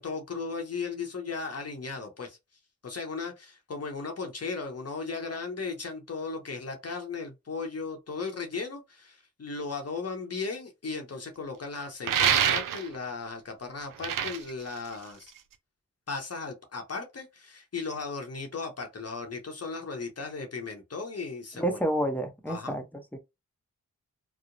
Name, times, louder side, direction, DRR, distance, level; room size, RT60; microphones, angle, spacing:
voice 1, 0.0-2.4 2.8-15.3 16.1-21.8 22.5-22.8, left 4 dB, 50° left, 0.8 m, -36 dB
sound 1, 12.0-13.0 13.8-15.5, right 9 dB, 75° right, 0.5 m, -26 dB
voice 2, 21.5-23.2, right 1 dB, 5° left, 0.7 m, -30 dB
2.8 x 2.0 x 2.6 m
cardioid pair, 45°, 33 cm